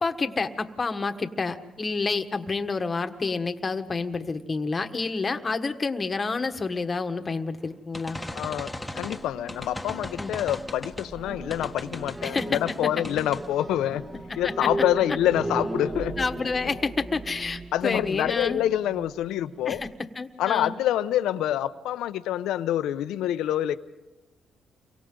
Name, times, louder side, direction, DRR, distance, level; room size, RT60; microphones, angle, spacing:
voice 1, 0.0-8.2 10.2-10.3 12.2-12.5 14.4-14.7 16.2-18.6 19.7-19.9 20.1-20.7, left 4 dB, 30° left, 7 dB, 1.4 m, -29 dB
sound 1, 7.9-11.1 11.5-12.8 13.0-13.5, left 1 dB, 5° left, 1.5 m, -37 dB
voice 2, 8.3-14.0 14.4-16.1 17.7-19.8 20.4-23.8, left 12 dB, 85° left, 12 dB, 0.8 m, -26 dB
sound 2, 8.9-19.9, right 1 dB, 25° right, 1.9 m, -37 dB
29.5 x 23.5 x 3.9 m, 1.1 s
cardioid pair, 90°, 0 cm